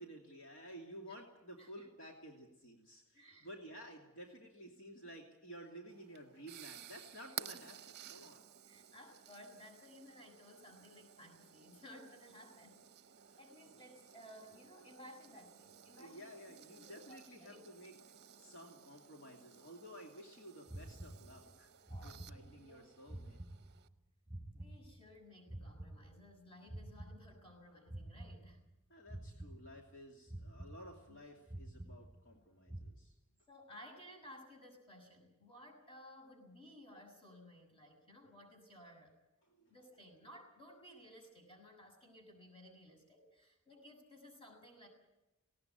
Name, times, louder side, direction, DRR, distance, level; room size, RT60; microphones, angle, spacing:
voice 1, 0.0-8.4 13.3-13.4 16.0-17.9 18.4-21.7 22.0-23.4 28.9-33.1 39.4-39.7, equal, 60° left, 0 dB, 2.8 m, -53 dB
voice 2, 1.6-1.9 3.1-3.8 8.1-8.3 8.6-12.8 13.4-16.3 16.7-17.6 21.9-22.9 24.5-28.6 31.1-31.2 33.5-39.2 39.7-44.9, left 1 dB, 25° left, 2 dB, 6.7 m, -57 dB
sound 1, 5.9-23.9, right 10 dB, 45° right, 0.8 m, -55 dB
sound 2, 20.7-21.6 21.9-22.8 23.1-25.2 25.5-27.6 27.9-28.8 29.1-30.0 30.3-31.2 31.5-32.4 32.7-32.9, right 1 dB, ahead, 5.5 m, -50 dB
19.0 x 18.0 x 9.3 m, 0.97 s
head